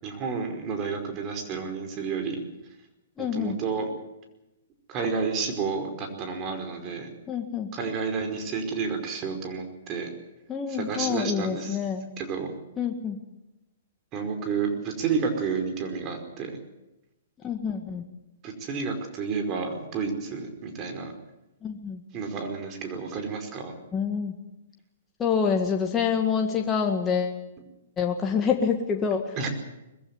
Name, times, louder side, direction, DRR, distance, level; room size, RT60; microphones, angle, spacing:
voice 1, 0.0-2.4 3.2-3.9 4.9-7.1 7.7-10.1 10.7-11.8 12.2-12.5 14.1-16.6 18.4-21.1 22.1-23.7 29.3-29.5, right 5 dB, 30° right, 5 dB, 5.0 m, -30 dB
voice 2, 3.2-3.6 7.3-7.7 10.5-12.1 12.8-13.2 17.4-18.1 21.6-22.0 23.9-24.4 25.2-27.4 28.0-29.5, left 6 dB, 20° left, 2 dB, 1.9 m, -27 dB
21.5 x 15.5 x 9.7 m, 0.96 s
hypercardioid pair, 125°, 0 cm